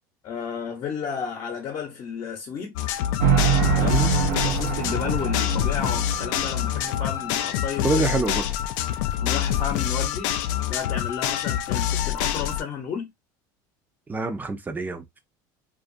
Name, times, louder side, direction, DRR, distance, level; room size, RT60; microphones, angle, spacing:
voice 1, 0.2-2.8 3.8-8.1 9.2-10.3 10.7-13.1, left 6 dB, 45° left, 0.9 m, -32 dB
sound 1, 2.8-12.6, left 11 dB, 75° left, 0.4 m, -26 dB
sound 2, 3.2-7.3, right 7 dB, 80° right, 0.5 m, -25 dB
voice 2, 3.8-4.1 7.8-8.5 14.1-15.2, right 3 dB, 15° right, 0.6 m, -26 dB
2.5 x 2.5 x 2.5 m
supercardioid pair, 100°, 10 cm